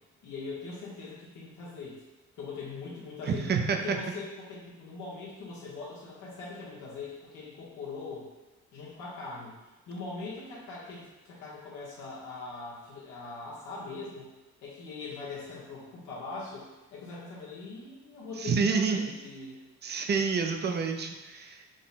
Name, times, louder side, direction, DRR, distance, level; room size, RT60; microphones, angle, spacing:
voice 1, 0.2-2.0 2.4-3.5 3.7-8.3 8.7-14.3 14.6-19.6, left 4 dB, 80° left, -7 dB, 1.1 m, -41 dB
voice 2, 3.2-4.0 18.4-19.1 19.8-21.6, right 5 dB, 35° right, 4 dB, 0.4 m, -28 dB
3.8 x 2.1 x 4.0 m, 1.1 s
cardioid pair, 90°, 30 cm